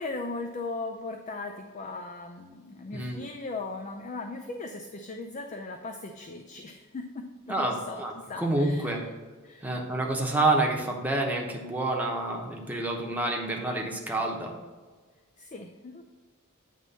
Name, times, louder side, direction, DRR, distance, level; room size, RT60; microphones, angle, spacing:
voice 1, 0.0-9.1 9.4-9.7 15.4-16.0, left 3 dB, 35° left, 4 dB, 0.4 m, -38 dB
voice 2, 7.5-9.0 9.6-14.5, right 2 dB, 10° right, -1 dB, 0.9 m, -28 dB
9.1 x 3.1 x 5.5 m, 1.5 s
head